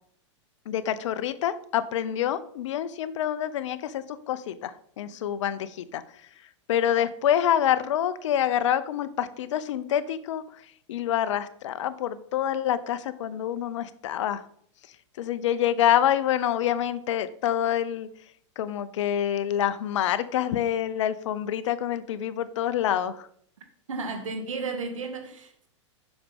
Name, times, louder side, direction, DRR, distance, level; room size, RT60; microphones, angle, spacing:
voice 1, 0.7-6.0 6.7-10.4 10.9-14.4 15.2-18.1 18.6-23.3, left 10 dB, 70° left, 0.9 m, -26 dB
voice 2, 23.9-25.7, right 3 dB, 90° right, 1.9 m, -33 dB
7.9 x 6.4 x 5.4 m
hypercardioid pair, 125°, 16 cm